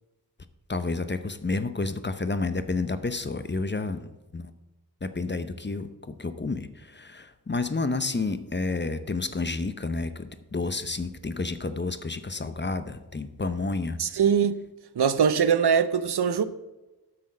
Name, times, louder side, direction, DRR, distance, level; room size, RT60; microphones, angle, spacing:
voice 1, 0.7-4.0 4.3-4.5 5.0-14.0, left 3 dB, 30° left, 0.7 m, -30 dB
voice 2, 14.0-14.5 15.0-16.4, right 7 dB, 75° right, 0.7 m, -22 dB
8.6 x 6.3 x 6.4 m
wide cardioid pair, 75°, 39 cm